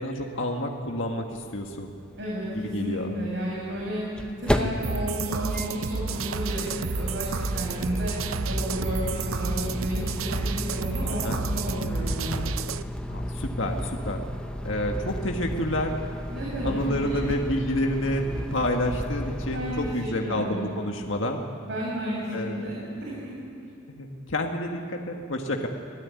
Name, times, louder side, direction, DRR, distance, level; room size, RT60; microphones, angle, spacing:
voice 1, 0.0-1.9 2.5-3.1 11.1-11.4 13.1-14.3 14.6-16.0 16.6-18.2 18.5-21.4 22.3-22.7 23.9-25.7, left 1 dB, 60° left, 2 dB, 1.7 m, -29 dB
sound 1, 1.4-1.5 1.6-1.7 3.6-19.9, equal, 5° left, 0.9 m, -33 dB
voice 2, 2.2-4.0 4.4-8.1 8.4-12.5 16.3-17.3 18.2-18.3 19.5-20.8 21.6-23.3, equal, 55° right, -5 dB, 6.6 m, -32 dB
sound 2, 4.8-12.8, right 4 dB, 75° right, 0.7 m, -31 dB
25.5 x 18.0 x 9.6 m, 2.5 s
head